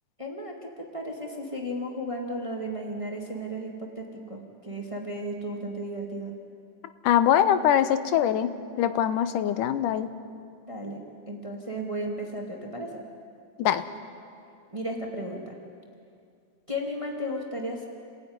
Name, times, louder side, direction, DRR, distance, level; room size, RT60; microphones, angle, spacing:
voice 1, 0.2-6.3 10.7-13.0 14.7-15.6 16.7-17.9, equal, 10° right, 0 dB, 1.9 m, -34 dB
voice 2, 7.0-10.2 13.6-13.8, left 10 dB, 85° left, 11 dB, 2.5 m, -23 dB
28.5 x 15.5 x 9.7 m, 2.4 s
omnidirectional pair, 3.6 m